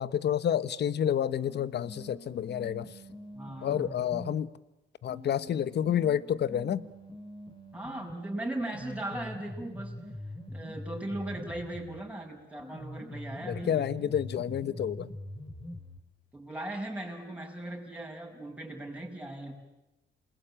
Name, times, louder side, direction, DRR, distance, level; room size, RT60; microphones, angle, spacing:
voice 1, 0.0-2.9 3.6-4.5 5.0-6.8 13.4-15.1, left 9 dB, 60° left, 17 dB, 1.0 m, -29 dB
sound 1, 1.1-4.4 5.1-12.1 12.6-16.1, left 1 dB, 25° left, 4.2 m, -44 dB
voice 2, 3.3-3.9 7.7-10.0 10.5-13.9 16.3-19.5, right 1 dB, 5° right, 0 dB, 7.1 m, -38 dB
28.0 x 21.5 x 8.9 m, 1.0 s
cardioid pair, 90°, 20 cm